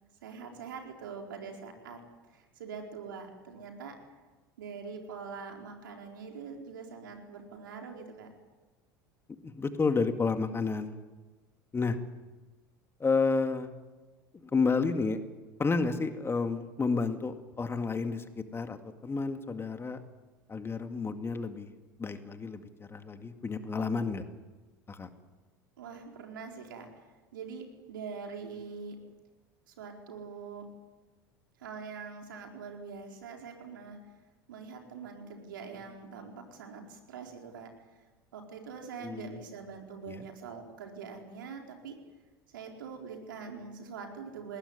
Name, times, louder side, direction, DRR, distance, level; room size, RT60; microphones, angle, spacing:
voice 1, 0.2-2.0 2.3-4.0 4.6-8.3 25.8-27.0 27.3-29.0 29.7-30.7 31.6-34.0 34.5-37.7 38.3-42.0 42.5-44.6, right 5 dB, 75° right, 2 dB, 4.5 m, -43 dB
voice 2, 9.4-11.0 11.7-12.0 13.0-13.7 14.3-15.2 15.6-18.8 19.0-20.0 20.5-21.7 22.0-24.2 24.9-25.1 39.0-39.4 40.1-40.2, left 4 dB, 20° left, 8 dB, 2.1 m, -30 dB
20.5 x 19.0 x 9.8 m, 1.2 s
hypercardioid pair, 75°, 11 cm